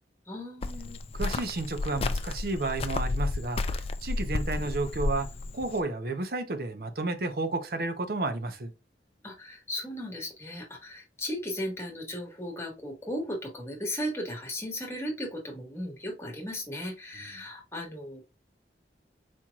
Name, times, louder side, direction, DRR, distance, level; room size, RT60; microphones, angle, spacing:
voice 1, 0.3-1.0 9.2-18.2, equal, 15° left, 1.5 m, -36 dB
Cricket, 0.6-5.8, left 3 dB, 35° left, 0.3 m, -32 dB
voice 2, 1.1-5.3 5.5-8.7, right 2 dB, 55° right, 0.8 m, -32 dB
4.5 x 4.4 x 2.4 m
head